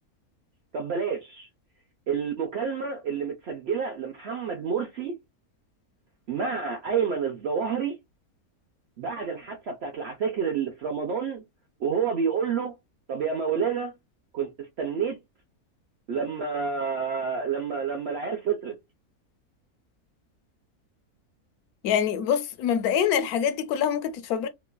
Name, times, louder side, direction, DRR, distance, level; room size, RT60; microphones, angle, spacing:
voice 1, 0.7-1.5 2.1-5.1 6.3-8.0 9.0-11.4 11.8-12.7 13.1-13.9 14.3-15.2 16.1-18.7, right 6 dB, 65° right, 0.7 m, -29 dB
voice 2, 21.8-24.5, left 8 dB, 80° left, 1.1 m, -25 dB
3.0 x 2.4 x 2.2 m
omnidirectional pair, 1.6 m